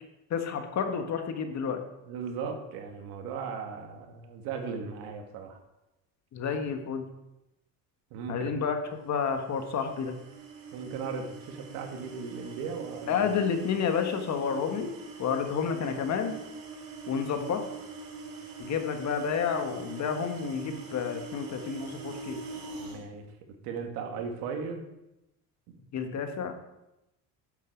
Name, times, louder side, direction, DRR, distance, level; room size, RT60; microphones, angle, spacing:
voice 1, 0.3-1.8 6.3-7.1 8.3-8.8 9.0-10.2 13.1-14.9 15.2-16.4 17.1-17.6 18.6-22.4 25.9-26.5, left 6 dB, 50° left, 6 dB, 1.6 m, -30 dB
voice 2, 2.1-5.6 8.1-8.5 10.7-13.2 22.8-23.2 23.6-24.8, right 5 dB, 85° right, 4 dB, 2.0 m, -37 dB
sound 1, 9.1-23.0, right 4 dB, 70° right, 3.1 m, -43 dB
11.5 x 7.8 x 4.6 m, 0.92 s
cardioid pair, 120°, 36 cm